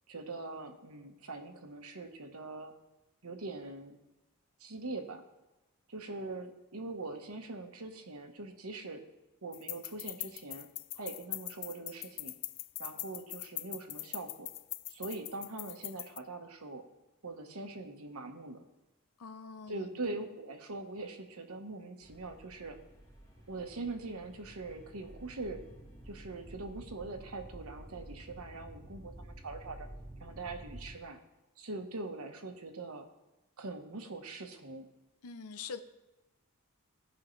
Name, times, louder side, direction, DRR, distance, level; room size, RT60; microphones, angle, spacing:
voice 1, 0.1-2.7 3.2-4.0 4.6-5.2 5.9-9.0 9.4-10.7 11.0-12.3 12.8-14.5 14.9-16.8 17.2-18.7 19.7-22.8 23.5-25.6 26.1-29.9 30.2-31.2 31.6-33.1 33.6-34.9, right 3 dB, 70° right, 5 dB, 1.1 m, -42 dB
Chaves samba, 9.5-16.2, left 17 dB, 55° left, 0.3 m, -42 dB
voice 2, 19.2-19.9 35.2-35.8, left 5 dB, 80° left, 10 dB, 0.7 m, -44 dB
sound 1, 22.0-30.9, right 1 dB, 15° left, 1.7 m, -51 dB
16.0 x 5.6 x 3.2 m, 1.0 s
head